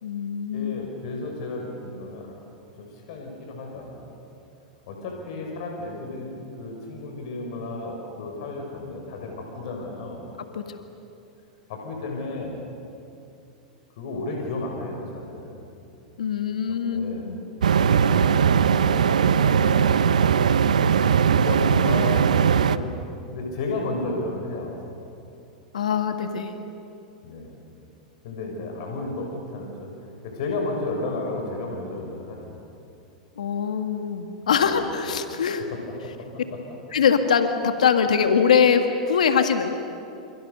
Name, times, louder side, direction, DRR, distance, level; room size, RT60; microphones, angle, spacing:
voice 1, 0.0-0.7 10.5-10.8 16.2-17.4 25.7-26.6 33.4-35.7 36.9-39.7, left 6 dB, 80° left, 7 dB, 1.9 m, -22 dB
voice 2, 0.5-2.3 2.8-4.1 4.9-10.2 11.7-12.6 14.0-15.6 16.6-17.3 17.9-18.4 18.8-20.1 20.6-20.9 21.3-23.0 23.3-24.9 27.2-27.5 28.2-29.9 30.2-32.6 34.6-34.8 35.7-36.6, left 2 dB, 60° left, 1 dB, 6.3 m, -33 dB
sound 1, 17.6-22.8, right 7 dB, 85° right, 0.9 m, -19 dB
28.5 x 28.0 x 6.9 m, 2.7 s
hypercardioid pair, 105°, 4 cm